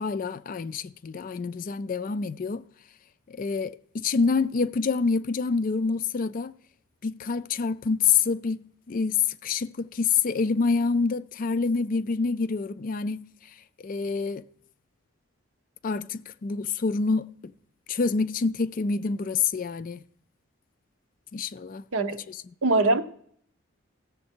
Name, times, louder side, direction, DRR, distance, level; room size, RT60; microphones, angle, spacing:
voice 1, 0.0-2.6 3.3-6.5 7.0-13.3 13.6-14.4 15.8-17.5 17.9-20.0 21.3-21.8 22.3-22.4, left 5 dB, 40° left, 0.3 m, -27 dB
voice 2, 22.6-23.0, right 2 dB, 90° right, 0.8 m, -22 dB
16.0 x 7.2 x 4.4 m
head